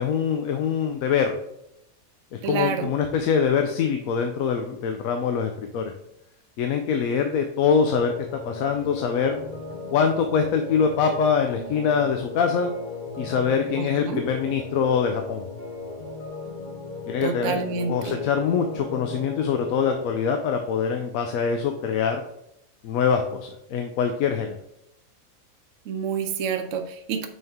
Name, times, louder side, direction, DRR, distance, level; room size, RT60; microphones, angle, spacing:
voice 1, 0.0-1.4 2.3-5.9 6.6-8.1 8.4-9.4 9.9-12.7 13.2-15.5 17.1-17.6 17.9-22.2 22.8-24.6, left 6 dB, 75° left, 5 dB, 1.0 m, -24 dB
voice 2, 2.4-2.9 13.8-14.2 17.2-18.2 25.9-27.3, right 6 dB, 65° right, 6 dB, 1.0 m, -28 dB
sound 1, 7.7-20.2, left 3 dB, 40° left, 0.8 m, -36 dB
6.3 x 4.5 x 3.5 m, 0.80 s
omnidirectional pair, 1.5 m